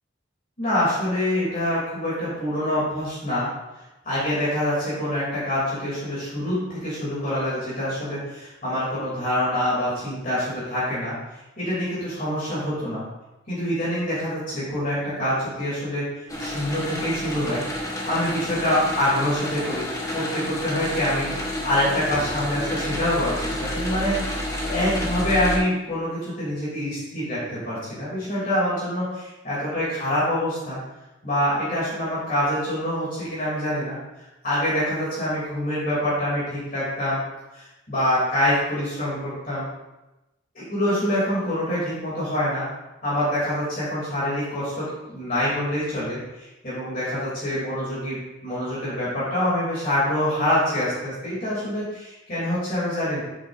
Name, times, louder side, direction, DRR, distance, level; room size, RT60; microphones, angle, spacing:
voice 1, 0.6-3.5 4.0-11.1 11.6-13.0 13.5-16.1 16.4-17.6 18.1-21.3 21.6-30.8 31.2-34.0 34.4-37.2 37.5-39.7 40.5-42.7 43.0-53.2, left 1 dB, 40° left, -9 dB, 2.9 m, -25 dB
sound 1, 16.3-25.6, left 1 dB, 15° left, 1.1 m, -30 dB
8.6 x 8.5 x 2.6 m, 1.0 s
head